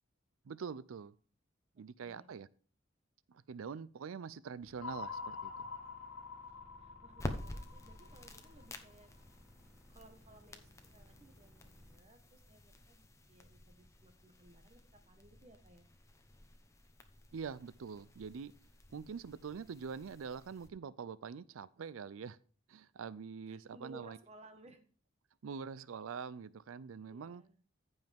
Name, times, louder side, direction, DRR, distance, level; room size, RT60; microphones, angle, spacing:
voice 1, 0.4-1.1 1.8-2.5 3.3-5.7 17.3-18.5 18.9-22.4 22.7-24.2 25.4-27.4, right 6 dB, 85° right, 0.4 m, -45 dB
voice 2, 1.7-2.4 6.8-9.1 9.9-15.9 23.5-24.8 27.0-27.6, right 2 dB, 30° right, 1.3 m, -60 dB
sound 1, 4.6-12.0, equal, 10° right, 4.0 m, -63 dB
sound 2, 4.8-9.1, left 5 dB, 85° left, 0.8 m, -46 dB
sound 3, 7.1-20.7, left 1 dB, 15° left, 1.0 m, -50 dB
15.0 x 5.4 x 3.5 m
head